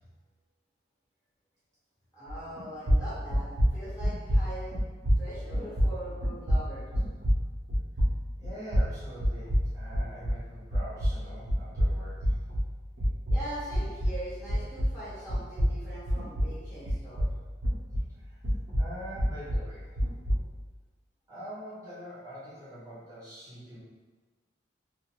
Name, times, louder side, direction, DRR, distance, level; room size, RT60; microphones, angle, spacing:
voice 1, 2.1-4.8 5.2-6.9 13.3-17.3, right 1 dB, 20° left, -11 dB, 1.2 m, -42 dB
sound 1, 2.3-2.6 2.8-10.5 10.7-15.0 15.3-18.1 18.4-20.5, equal, 75° right, 0.9 m, -28 dB
voice 2, 8.4-12.4 18.1-18.4 18.8-20.0 21.3-23.8, equal, 20° right, -11 dB, 0.9 m, -44 dB
2.6 x 2.5 x 3.0 m, 1.3 s
head